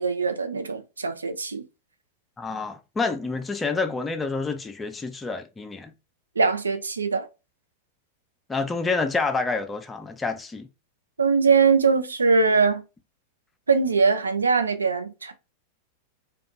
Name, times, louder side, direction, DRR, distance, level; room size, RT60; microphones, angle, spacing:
voice 1, 0.0-1.6 6.4-7.3 11.2-12.8 13.7-15.3, right 5 dB, 75° right, 0.3 m, -22 dB
voice 2, 2.4-5.9 8.5-10.7, left 4 dB, 15° left, 0.4 m, -28 dB
2.5 x 2.3 x 2.5 m
figure-of-eight pair, 90°, 0 cm